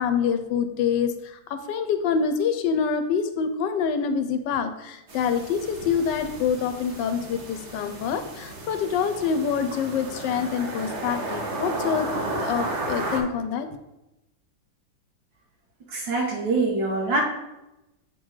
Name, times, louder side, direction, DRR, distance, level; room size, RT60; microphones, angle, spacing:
voice 1, 0.0-12.1 12.4-13.7, left 6 dB, 75° left, 9 dB, 1.2 m, -26 dB
sound 1, 5.1-13.2, right 2 dB, 45° right, 1.1 m, -33 dB
voice 2, 15.9-17.2, right 3 dB, 75° right, -1 dB, 1.8 m, -24 dB
7.5 x 3.8 x 4.7 m, 0.93 s
omnidirectional pair, 2.1 m